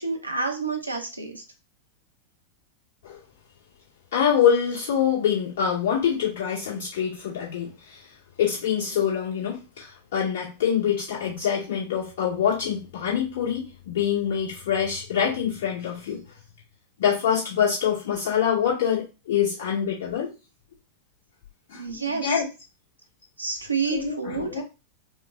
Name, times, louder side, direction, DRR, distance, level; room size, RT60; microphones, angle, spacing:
voice 1, 0.0-1.4 21.7-22.4 23.4-24.6, right 4 dB, 85° right, 3 dB, 0.7 m, -29 dB
voice 2, 4.1-8.0 8.4-16.2 17.0-20.3 21.7-22.4 23.9-24.6, left 8 dB, 55° left, -5 dB, 2.1 m, -25 dB
5.0 x 2.2 x 2.6 m, 0.29 s
figure-of-eight pair, 90°, 0 cm